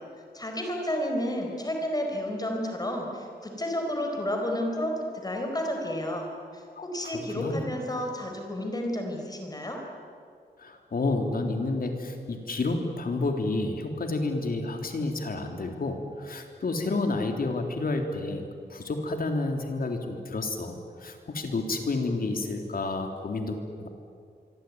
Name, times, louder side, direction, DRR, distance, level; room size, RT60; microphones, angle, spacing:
voice 1, 0.3-6.3 6.5-9.8, left 1 dB, 20° left, 2 dB, 4.6 m, -31 dB
voice 2, 6.8-7.7 10.6-23.9, left 2 dB, 55° left, 4 dB, 3.5 m, -30 dB
25.5 x 24.0 x 9.6 m, 2.3 s
wide cardioid pair, 140°, 18 cm